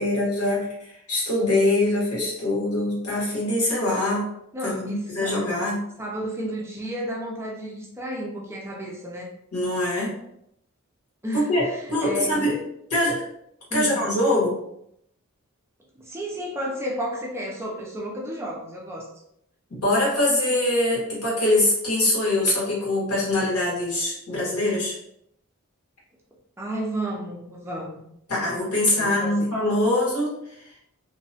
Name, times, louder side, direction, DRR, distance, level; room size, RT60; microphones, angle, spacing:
voice 1, 0.0-4.3 4.6-5.8 9.5-10.1 11.3-12.6 12.9-13.3 13.7-14.6 19.7-24.9 28.3-30.3, left 1 dB, 90° left, -5 dB, 1.3 m, -23 dB
voice 2, 4.5-5.4 6.0-9.3 11.2-12.4 13.7-14.0 16.1-19.1 26.6-28.0 29.0-29.5, equal, 10° right, -3 dB, 0.4 m, -32 dB
2.7 x 2.1 x 2.7 m, 0.75 s
head